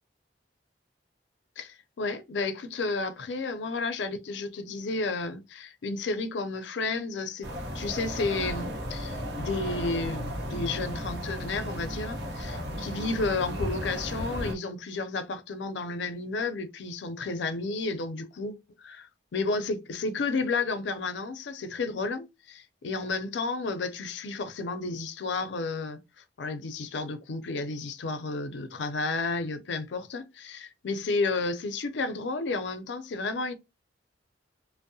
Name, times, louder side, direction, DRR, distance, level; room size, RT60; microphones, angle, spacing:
voice 1, 1.6-33.6, left 3 dB, 85° left, 0.5 m, -32 dB
sound 1, 7.4-14.5, equal, 65° right, 0.8 m, -34 dB
2.6 x 2.0 x 2.6 m
head